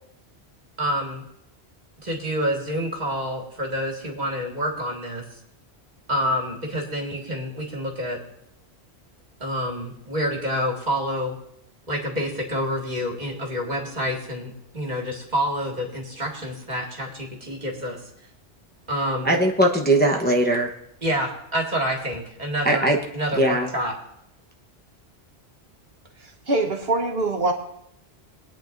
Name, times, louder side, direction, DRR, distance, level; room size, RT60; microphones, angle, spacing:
voice 1, 0.8-1.2 2.0-5.3 6.1-8.2 9.4-11.4 11.9-18.0 18.9-19.3 21.0-23.9, equal, 40° right, 0 dB, 2.1 m, -28 dB
voice 2, 19.2-20.7 22.6-23.0 23.3-23.7, right 1 dB, 10° left, -1 dB, 0.9 m, -20 dB
voice 3, 26.2-27.5, right 2 dB, 65° right, 2 dB, 1.4 m, -24 dB
21.5 x 9.1 x 2.6 m, 0.76 s
omnidirectional pair, 1.1 m